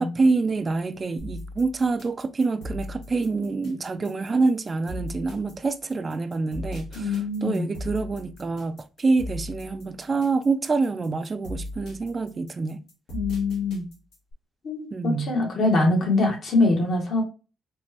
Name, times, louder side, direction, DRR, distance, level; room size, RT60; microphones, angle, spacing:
voice 1, 0.0-12.8 14.9-15.3, right 3 dB, 35° right, 0.3 m, -26 dB
sound 1, 1.2-14.3, left 1 dB, 85° left, 1.6 m, -38 dB
voice 2, 6.9-7.7 13.1-13.9 14.6-17.2, left 2 dB, 60° left, 1.3 m, -23 dB
4.3 x 2.2 x 2.8 m
cardioid pair, 90°, 0 cm